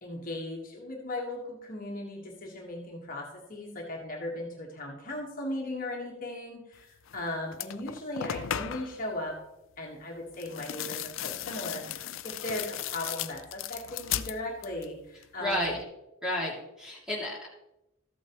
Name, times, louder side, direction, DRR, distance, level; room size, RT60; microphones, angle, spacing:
voice 1, 0.0-9.4 9.8-11.9 12.2-15.7, left 1 dB, 40° left, -1 dB, 1.5 m, -37 dB
sound 1, 7.1-7.2 7.5-9.0 10.3-14.9 15.2-15.8, left 10 dB, 75° left, 0.4 m, -36 dB
voice 2, 15.4-15.8 16.2-17.5, equal, 5° right, -4 dB, 2.6 m, -31 dB
13.5 x 8.4 x 3.0 m, 0.90 s
head